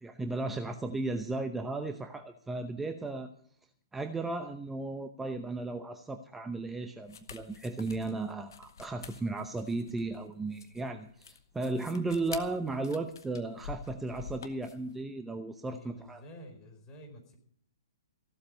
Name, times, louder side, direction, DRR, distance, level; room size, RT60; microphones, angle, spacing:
voice 1, 0.0-3.3 3.9-16.2, right 2 dB, 5° right, 8 dB, 0.8 m, -35 dB
sound 1, 7.0-14.9, left 6 dB, 65° left, 1.7 m, -47 dB
voice 2, 15.7-17.4, equal, 25° left, 3 dB, 4.7 m, -50 dB
15.5 x 13.0 x 5.3 m, 0.62 s
figure-of-eight pair, 120°, 2 cm